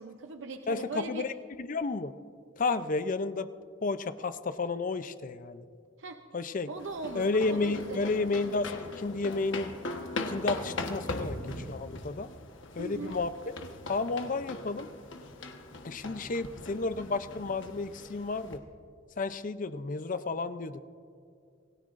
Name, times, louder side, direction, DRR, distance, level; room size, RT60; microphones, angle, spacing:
voice 1, 0.0-1.3 6.0-6.2 6.7-8.3 12.8-13.2, right 3 dB, 80° right, 6 dB, 0.7 m, -39 dB
voice 2, 0.7-1.3 1.6-2.1 2.6-3.5 3.8-5.6 6.3-6.7 7.1-9.7 10.3-12.3 12.8-13.3 13.9-14.9 15.8-18.6 19.2-20.8, left 3 dB, 45° left, 12 dB, 0.5 m, -32 dB
sound 1, 6.8-18.6, left 2 dB, 85° left, 1.3 m, -40 dB
27.5 x 17.0 x 2.6 m, 2.4 s
head